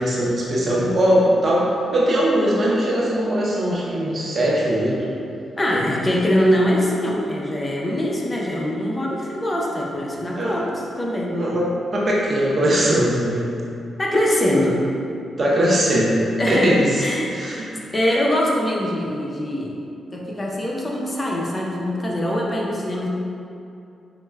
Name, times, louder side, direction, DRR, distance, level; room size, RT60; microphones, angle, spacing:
voice 1, 0.0-5.0 5.7-5.8 10.3-10.5 11.3-13.5 15.4-17.0 17.3-17.7, equal, 50° right, -5 dB, 0.7 m, -20 dB
voice 2, 5.6-11.3 14.0-14.8 16.4-16.7 17.0-17.3 17.6-17.7 17.9-19.8 20.1-23.1, equal, 30° left, -3 dB, 0.5 m, -22 dB
4.4 x 2.1 x 2.2 m, 2.6 s
supercardioid pair, 45°, 0 cm